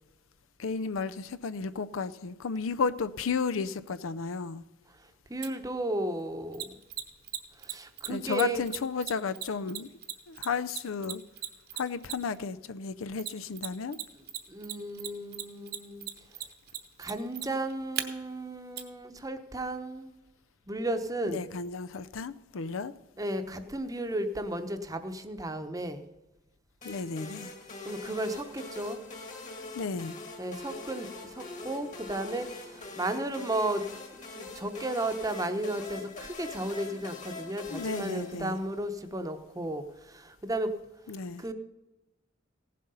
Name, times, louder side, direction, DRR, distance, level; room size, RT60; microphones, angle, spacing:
voice 1, 0.6-4.6 8.1-9.9 10.3-11.2 11.7-14.0 21.3-22.9 26.8-27.5 29.7-30.1 37.7-38.6 41.1-41.4, left 5 dB, 85° left, 0.5 m, -33 dB
voice 2, 5.0-6.7 7.6-8.6 14.5-16.0 17.0-20.1 20.7-21.5 23.2-26.1 27.8-29.0 30.4-33.8 34.4-40.7 41.4-41.5, right 1 dB, 20° right, 0.8 m, -34 dB
Mechanisms, 5.4-5.5 6.5-12.4 13.2-14.0 14.3-18.0 18.8-18.9, right 11 dB, 55° right, 1.0 m, -36 dB
sound 1, 26.8-39.0, left 3 dB, 40° left, 1.8 m, -43 dB
16.5 x 7.6 x 5.5 m
head